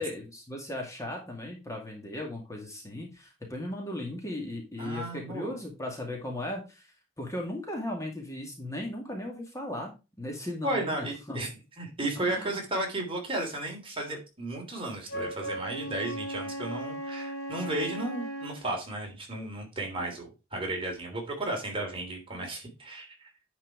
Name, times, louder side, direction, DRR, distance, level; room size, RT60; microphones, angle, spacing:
voice 1, 0.0-6.9 7.2-9.9 10.2-11.4 12.2-12.6, left 1 dB, 15° left, 1 dB, 2.1 m, -37 dB
voice 2, 4.8-5.6 10.6-11.5 11.8-23.3, right 1 dB, 30° right, 0 dB, 3.3 m, -34 dB
Wind instrument woodwind instrument, 15.1-18.6, right 1 dB, 60° left, 2.1 m, -37 dB
10.5 x 4.7 x 4.6 m, 0.28 s
head